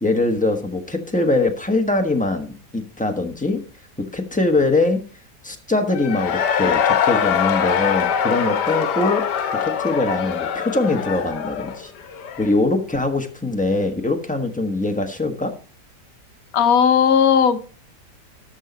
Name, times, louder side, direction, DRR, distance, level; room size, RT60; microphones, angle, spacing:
voice 1, 0.0-3.6 4.0-5.0 5.4-9.2 9.6-11.9 12.4-15.5, left 2 dB, 5° left, 1.1 m, -22 dB
Cheering / Crowd, 5.9-12.6, left 8 dB, 85° left, 1.4 m, -23 dB
voice 2, 16.5-17.6, left 7 dB, 60° left, 1.3 m, -15 dB
13.0 x 6.5 x 4.1 m
omnidirectional pair, 1.8 m